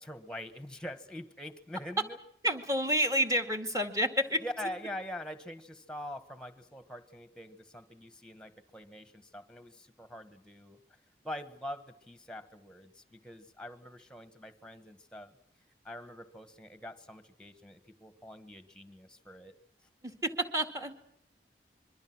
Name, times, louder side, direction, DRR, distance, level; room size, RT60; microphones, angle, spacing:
voice 1, 0.0-2.2 4.4-10.8 11.2-15.3 15.8-19.5, left 1 dB, 5° left, 10 dB, 1.5 m, -44 dB
voice 2, 2.4-4.4 20.0-20.9, equal, 20° right, 4 dB, 2.1 m, -29 dB
26.0 x 23.5 x 6.2 m, 0.70 s
head